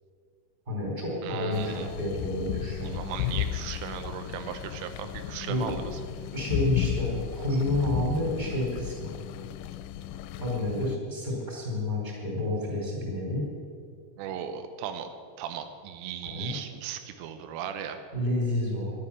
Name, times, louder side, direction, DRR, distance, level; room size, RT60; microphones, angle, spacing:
voice 1, 0.7-3.0 5.5-5.7 6.3-9.1 10.4-13.4 16.3-16.5 18.1-18.9, left 1 dB, 10° right, -3 dB, 3.7 m, -29 dB
voice 2, 1.2-1.9 2.8-6.0 14.2-18.0, right 9 dB, 90° right, 7 dB, 3.4 m, -37 dB
sound 1, 1.5-11.0, left 11 dB, 90° left, 3.1 m, -34 dB
12.0 x 11.5 x 7.2 m, 2.3 s
omnidirectional pair, 5.6 m